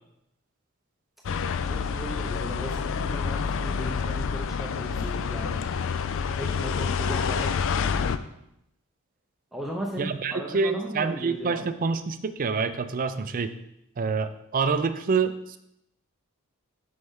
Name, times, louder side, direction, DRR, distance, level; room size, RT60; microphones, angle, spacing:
sound 1, 1.2-8.2, left 6 dB, 60° left, 0.4 m, -28 dB
voice 1, 1.6-5.6 6.4-7.6 9.5-11.7, right 1 dB, ahead, -2 dB, 0.7 m, -36 dB
voice 2, 10.0-13.5 14.0-15.6, right 5 dB, 40° right, 10 dB, 0.4 m, -27 dB
7.7 x 5.4 x 3.6 m, 0.80 s
head